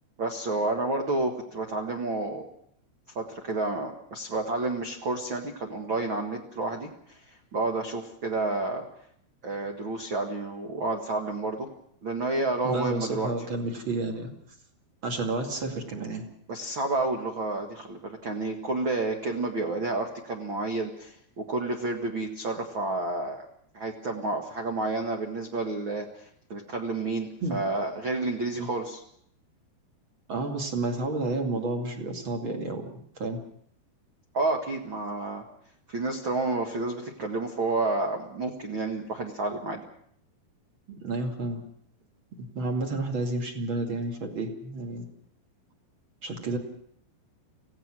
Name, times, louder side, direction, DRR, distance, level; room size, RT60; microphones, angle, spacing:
voice 1, 0.2-2.4 3.1-8.8 9.4-11.7 12.0-13.3 16.5-23.4 23.7-29.0 34.3-35.4 35.9-39.8, right 2 dB, 65° right, 3 dB, 1.2 m, -30 dB
voice 2, 12.6-14.3 15.0-16.2 27.4-27.6 28.5-28.7 30.3-32.8 33.2-33.4 40.9-41.6 42.4-45.1 46.2-46.6, right 2 dB, 35° right, 3 dB, 2.4 m, -30 dB
26.5 x 16.5 x 6.2 m, 0.65 s
omnidirectional pair, 5.1 m